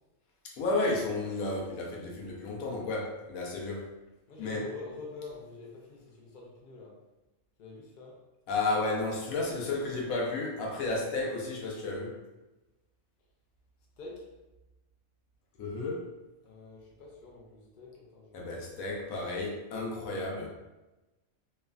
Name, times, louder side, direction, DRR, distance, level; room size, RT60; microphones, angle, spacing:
voice 1, 0.4-3.9 4.4-4.7 8.5-12.2 15.6-16.1 18.3-20.5, left 2 dB, 75° left, -1 dB, 1.0 m, -32 dB
voice 2, 4.3-7.0 7.6-8.2 14.0-14.3 16.4-18.6, left 3 dB, 55° left, -2 dB, 0.6 m, -46 dB
3.1 x 2.2 x 2.3 m, 1.0 s
omnidirectional pair, 1.5 m